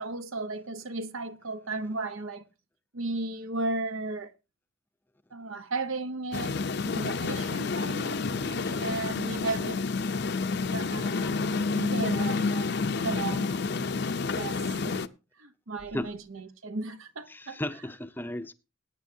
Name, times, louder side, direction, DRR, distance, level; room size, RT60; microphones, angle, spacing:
voice 1, 0.0-2.4 2.9-4.3 5.3-9.8 10.7-12.7 13.0-13.5 14.4-15.0 15.4-17.6, right 3 dB, 80° right, 1.0 m, -35 dB
sound 1, 6.3-15.1, left 4 dB, 55° left, 0.6 m, -29 dB
voice 2, 17.3-18.5, left 1 dB, 10° left, 0.5 m, -36 dB
20.0 x 9.2 x 2.7 m
head